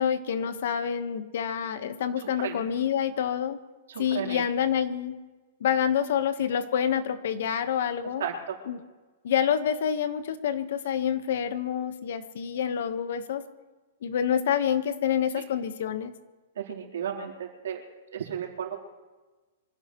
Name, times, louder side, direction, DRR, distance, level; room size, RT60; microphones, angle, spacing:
voice 1, 0.0-3.6 4.0-5.2 5.6-8.2 8.7-8.8 9.2-13.4 14.0-16.1, left 8 dB, 60° left, 10 dB, 1.4 m, -27 dB
voice 2, 3.9-4.4 8.2-8.6 16.6-17.8 18.1-18.8, right 8 dB, 80° right, 0 dB, 3.9 m, -34 dB
25.5 x 15.5 x 3.2 m, 1.2 s
hypercardioid pair, 165°, 0 cm